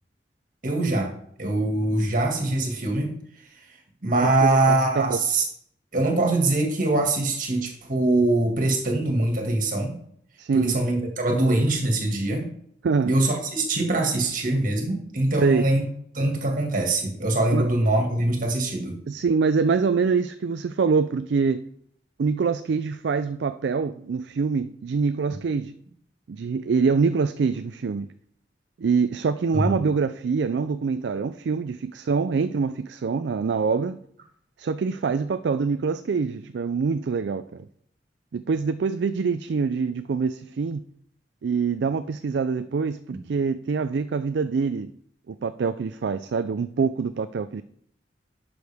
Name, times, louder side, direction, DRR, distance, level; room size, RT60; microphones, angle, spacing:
voice 1, 0.6-1.1 1.4-3.2 3.6-3.7 4.0-5.4 5.9-9.9 10.5-12.5 13.0-15.9 16.1-19.0 29.5-29.8 43.1-43.2, right 2 dB, 50° right, 2 dB, 2.0 m, -23 dB
voice 2, 4.2-5.2 10.4-10.7 12.8-13.1 15.4-15.6 17.5-17.7 19.1-21.7 22.2-25.7 26.3-28.1 28.8-34.0 34.6-37.6 38.3-40.8 41.4-44.9 45.3-47.6, right 5 dB, 70° right, 11 dB, 0.4 m, -25 dB
11.5 x 6.3 x 3.5 m, 0.67 s
head